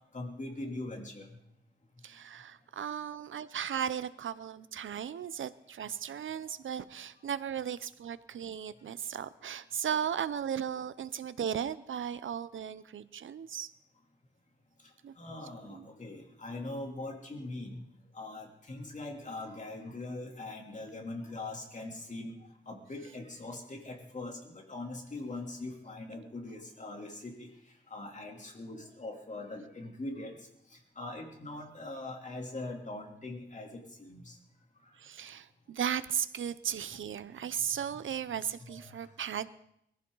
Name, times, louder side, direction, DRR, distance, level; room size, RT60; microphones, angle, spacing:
voice 1, 0.1-1.2 15.2-17.8 18.2-22.3 22.7-27.5 27.9-30.3 31.0-34.3 38.6-38.9, left 2 dB, 40° left, 1 dB, 3.2 m, -41 dB
voice 2, 2.0-13.7 15.0-15.1 15.7-15.8 35.0-39.5, right 8 dB, 85° right, 15 dB, 0.8 m, -36 dB
22.0 x 15.0 x 4.0 m, 0.75 s
wide cardioid pair, 100°, 20 cm